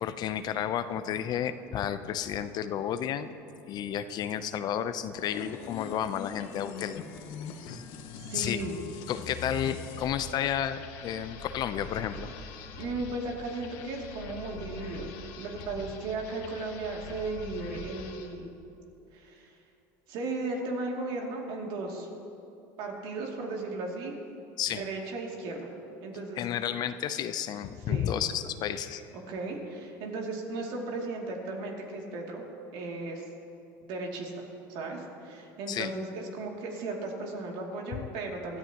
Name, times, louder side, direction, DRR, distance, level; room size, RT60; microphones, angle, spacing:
voice 1, 0.0-3.3 3.7-7.0 7.6-7.8 8.3-8.6 9.1-12.3 24.6-24.8 26.4-29.0 35.7-35.9, left 9 dB, 50° left, 11 dB, 0.6 m, -32 dB
sound 1, 5.2-18.4, left 5 dB, 75° left, 1.3 m, -43 dB
voice 2, 8.1-8.8 12.8-15.1 15.4-18.5 19.1-19.5 20.1-22.1 22.8-24.1 24.7-25.7 26.0-26.4 27.9-28.1 29.1-32.4 32.7-33.3 33.8-38.6, right 2 dB, 70° right, 0 dB, 2.6 m, -36 dB
21.5 x 13.5 x 3.0 m, 2.8 s
supercardioid pair, 105°, 9 cm